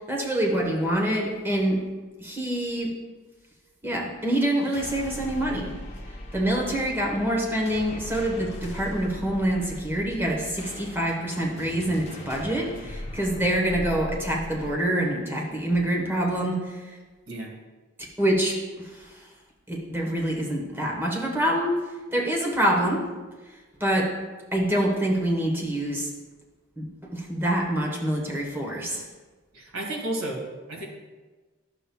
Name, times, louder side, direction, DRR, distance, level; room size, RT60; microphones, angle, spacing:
voice 1, 0.1-1.8 2.2-2.9 3.8-5.7 6.3-16.8 18.2-19.0 19.7-21.7 22.1-23.0 23.8-24.1 24.5-26.1 26.8-29.0, right 1 dB, 10° right, -1 dB, 1.1 m, -26 dB
sound 1, 4.5-14.7, left 1 dB, 30° left, 0.9 m, -39 dB
voice 2, 29.5-30.8, right 1 dB, 80° right, -1 dB, 1.8 m, -32 dB
11.0 x 6.9 x 2.3 m, 1.3 s
head